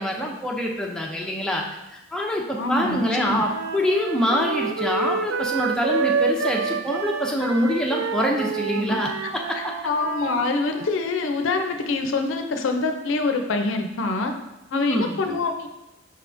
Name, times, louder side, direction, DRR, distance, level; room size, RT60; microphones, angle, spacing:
voice 1, 0.0-1.6 2.1-9.1 14.7-15.2, equal, 5° left, -2 dB, 0.5 m, -25 dB
voice 2, 2.6-3.5 8.7-9.3 9.6-14.3 14.7-15.7, left 3 dB, 75° left, 5 dB, 0.5 m, -26 dB
Wind instrument woodwind instrument, 2.7-10.9, right 5 dB, 65° right, 0.3 m, -28 dB
5.5 x 3.5 x 2.5 m, 0.97 s
head